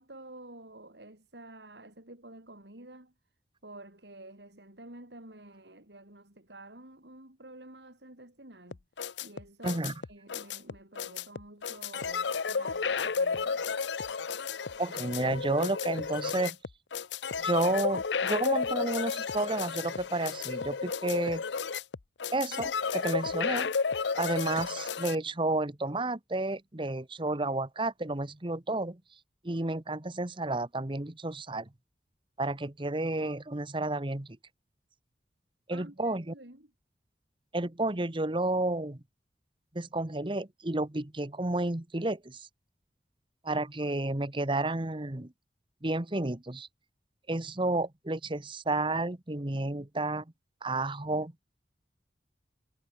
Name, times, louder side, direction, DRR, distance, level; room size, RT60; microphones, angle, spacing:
voice 1, 0.0-3.1 3.6-8.8 9.2-13.8 35.7-36.7, right 2 dB, 75° right, 4.9 m, -50 dB
sound 1, 8.7-25.2, left 5 dB, 85° left, 0.7 m, -32 dB
voice 2, 9.6-9.9 14.8-16.6 17.4-21.4 22.3-23.7 24.2-29.0 29.4-31.7 32.4-34.4 35.7-36.3 37.5-39.0 39.7-42.5 43.4-45.3 45.8-46.7 47.3-50.2 50.6-51.3, right 2 dB, 30° right, 1.3 m, -31 dB
head